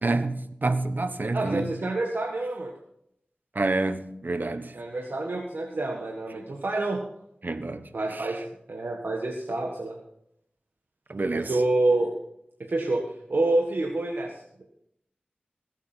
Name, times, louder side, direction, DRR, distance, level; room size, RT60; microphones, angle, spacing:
voice 1, 0.0-1.8 3.5-4.8 7.4-8.3 11.1-11.6, right 2 dB, 60° right, 1.1 m, -28 dB
voice 2, 1.3-2.7 4.7-7.0 7.9-8.4 8.7-10.0 11.3-12.1 12.6-13.0 13.3-14.6, right 2 dB, 80° right, 1.6 m, -27 dB
20.0 x 8.4 x 4.5 m
wide cardioid pair, 50°, 3 cm